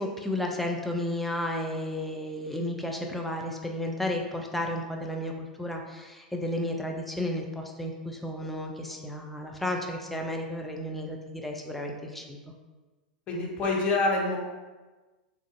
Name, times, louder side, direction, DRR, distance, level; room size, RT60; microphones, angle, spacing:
voice 1, 0.0-12.4, left 1 dB, 5° left, 1 dB, 0.3 m, -33 dB
voice 2, 13.3-14.4, left 2 dB, 30° left, -2 dB, 0.7 m, -26 dB
3.0 x 2.4 x 2.5 m, 1.2 s
figure-of-eight pair, 90°, 4 cm